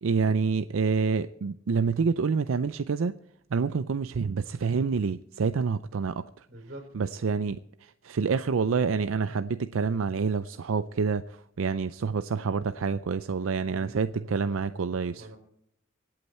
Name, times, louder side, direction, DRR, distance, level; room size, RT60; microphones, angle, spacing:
voice 1, 0.0-3.2 3.5-6.5 6.9-15.3, right 5 dB, 85° right, 12 dB, 0.5 m, -27 dB
voice 2, 6.5-6.9 13.7-15.4, right 1 dB, 55° right, 6 dB, 4.1 m, -46 dB
25.0 x 8.7 x 4.3 m, 0.73 s
head